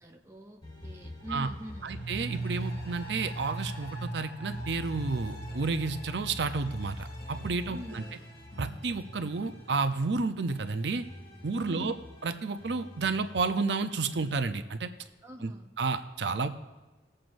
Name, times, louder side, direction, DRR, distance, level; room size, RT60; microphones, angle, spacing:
voice 1, 0.0-2.0 7.7-8.0 11.6-12.0 15.2-15.7, equal, 15° right, 3 dB, 0.6 m, -44 dB
sound 1, 0.6-4.0 4.5-10.0 10.5-14.3, left 1 dB, 30° left, 3.2 m, -46 dB
sound 2, 1.2-10.6 10.9-11.0, right 2 dB, 65° left, 1.8 m, -41 dB
voice 2, 1.8-8.0 8.6-11.0 11.4-11.9 12.2-14.9 15.4-15.5 15.8-16.5, right 4 dB, 70° right, 9 dB, 0.6 m, -31 dB
21.0 x 7.6 x 2.6 m, 1.1 s
head